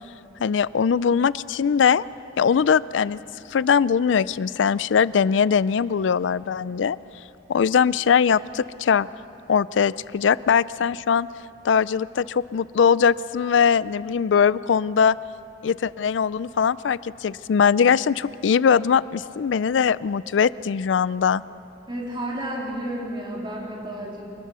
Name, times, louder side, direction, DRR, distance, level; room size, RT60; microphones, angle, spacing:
voice 1, 0.4-2.0 2.4-3.2 3.5-7.0 7.5-9.1 9.5-11.3 11.6-15.2 15.6-21.4, left 6 dB, 85° left, 19 dB, 0.4 m, -21 dB
voice 2, 21.9-24.3, right 1 dB, 25° right, -3 dB, 3.7 m, -31 dB
26.5 x 20.5 x 6.2 m, 2.9 s
head